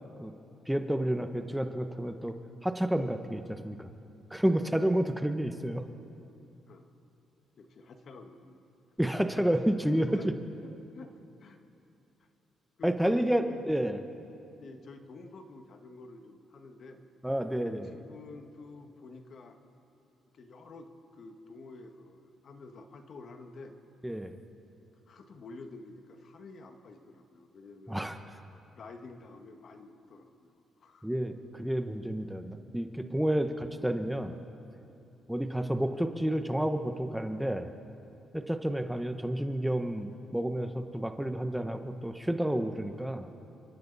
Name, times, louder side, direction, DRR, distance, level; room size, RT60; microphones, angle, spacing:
voice 1, 0.7-2.4 2.6-3.9 4.3-5.8 9.0-10.3 12.8-14.0 17.2-17.9 24.0-24.3 27.9-28.2 31.0-34.3 35.3-37.7 38.3-43.3, right 1 dB, 5° right, 6 dB, 1.1 m, -30 dB
voice 2, 7.6-8.6 9.2-9.4 9.9-10.3 10.9-11.1 11.4-11.6 12.8-13.7 14.6-17.0 17.9-19.6 20.3-23.8 25.1-28.0 28.8-30.5 30.8-31.1 33.3-33.4, left 3 dB, 55° left, 5 dB, 1.7 m, -49 dB
27.5 x 24.0 x 4.2 m, 2.7 s
cardioid pair, 90°, 0 cm